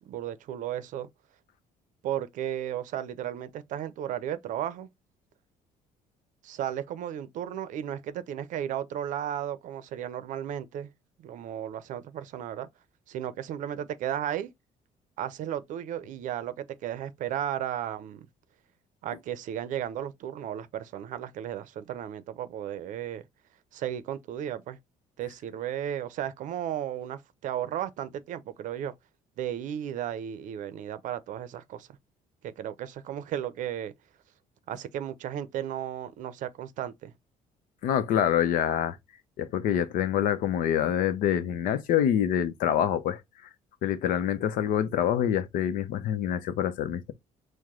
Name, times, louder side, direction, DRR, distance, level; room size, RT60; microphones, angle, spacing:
voice 1, 0.1-1.1 2.0-4.9 6.4-10.9 11.2-12.7 13.1-14.5 15.2-18.3 19.0-23.2 23.7-24.8 25.2-28.9 29.4-31.9 32.4-33.9 34.7-37.1, right 10 dB, 65° right, 0.6 m, -34 dB
voice 2, 37.8-39.0 39.4-43.2 43.8-47.1, left 10 dB, 75° left, 0.7 m, -26 dB
4.6 x 2.2 x 3.7 m
cardioid pair, 110°, 14 cm